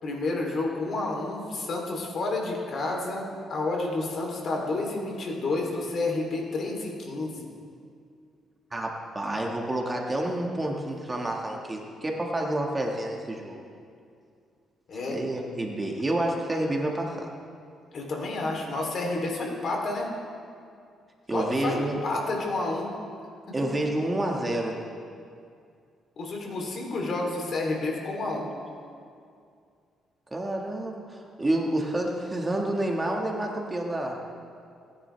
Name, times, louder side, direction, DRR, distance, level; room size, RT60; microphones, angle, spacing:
voice 1, 0.0-7.4 14.9-15.2 17.9-20.1 21.3-22.9 26.2-28.5, left 2 dB, 55° left, 0 dB, 3.3 m, -30 dB
voice 2, 8.7-13.6 15.1-17.3 21.3-22.0 23.5-24.8 30.3-34.2, right 1 dB, 20° right, 0 dB, 1.8 m, -29 dB
28.0 x 10.0 x 3.5 m, 2.3 s
cardioid pair, 90°, 0 cm